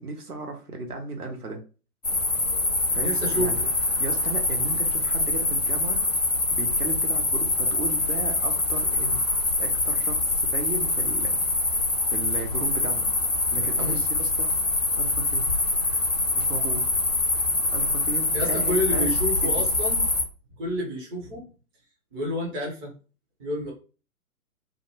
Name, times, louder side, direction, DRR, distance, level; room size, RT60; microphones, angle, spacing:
voice 1, 0.0-1.6 2.9-3.6 4.0-6.1 6.5-9.3 9.6-11.3 12.1-13.1 13.5-14.5 15.0-15.5 16.3-16.9 17.7-19.1 19.4-19.5, right 3 dB, 80° right, 3 dB, 0.9 m, -35 dB
sound 1, 2.0-20.2, left 2 dB, 30° left, 0.3 m, -24 dB
voice 2, 3.0-3.7 13.8-14.0 18.3-20.1 20.6-21.4 22.1-22.9 23.4-23.7, equal, 15° right, -3 dB, 0.6 m, -29 dB
2.5 x 2.0 x 2.8 m, 0.34 s
figure-of-eight pair, 120°, 45 cm